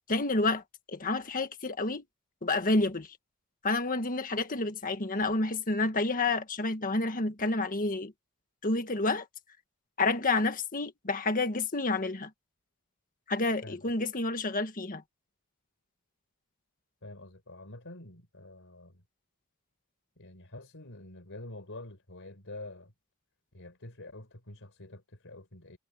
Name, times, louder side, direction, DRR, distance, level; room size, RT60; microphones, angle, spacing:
voice 1, 0.1-2.0 2.4-3.1 3.6-8.1 8.6-9.2 10.0-12.3 13.3-15.0, left 2 dB, 40° left, 1.7 m, -29 dB
voice 2, 17.0-19.0 20.2-22.9 23.5-25.8, left 2 dB, 60° left, 4.6 m, -47 dB
head